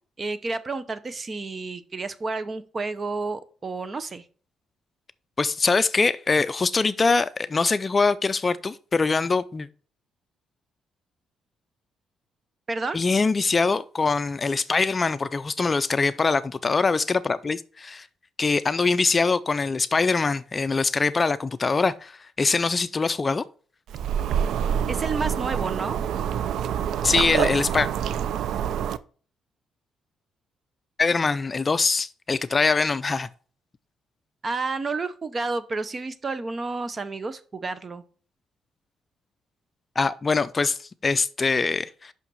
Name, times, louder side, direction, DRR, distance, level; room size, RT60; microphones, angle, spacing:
voice 1, 0.2-4.2 12.7-13.0 24.9-26.0 34.4-38.0, right 3 dB, 35° right, 0.7 m, -30 dB
voice 2, 5.4-9.7 12.9-18.1 18.4-23.4 27.0-27.9 31.0-33.3 40.0-42.1, left 4 dB, 30° left, 0.4 m, -23 dB
sound 1, 23.9-29.0, right 9 dB, 75° right, 0.4 m, -26 dB
5.8 x 5.7 x 5.4 m
cardioid pair, 90°, 0 cm